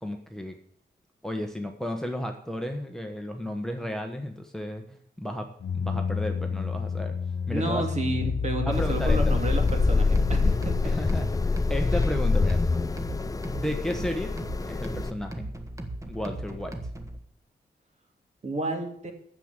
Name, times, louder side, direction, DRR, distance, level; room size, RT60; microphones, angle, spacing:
voice 1, 0.0-0.5 1.2-7.1 7.5-7.9 8.6-9.2 10.8-12.6 13.5-14.3 14.6-15.5 16.0-16.8, left 1 dB, 5° left, 4 dB, 1.1 m, -33 dB
sound 1, 5.6-11.0, left 6 dB, 70° left, 0.6 m, -30 dB
voice 2, 7.5-11.0 18.4-19.1, right 2 dB, 40° right, 4 dB, 2.4 m, -31 dB
sound 2, 8.7-15.1, left 3 dB, 20° left, 0.4 m, -25 dB
sound 3, 9.7-17.2, right 1 dB, 20° right, 1.5 m, -37 dB
9.9 x 7.5 x 8.9 m, 0.64 s
wide cardioid pair, 145°, 17 cm